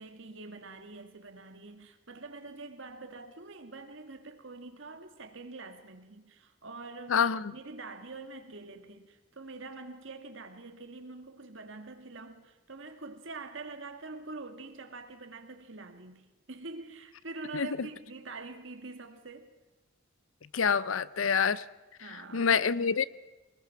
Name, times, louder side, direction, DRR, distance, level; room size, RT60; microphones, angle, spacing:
voice 1, 0.0-19.5 22.0-22.5, right 3 dB, 70° right, 2.0 m, -45 dB
voice 2, 7.1-7.5 17.5-17.7 20.5-21.6 22.1-23.0, left 6 dB, 90° left, 0.6 m, -27 dB
24.0 x 20.0 x 5.9 m
head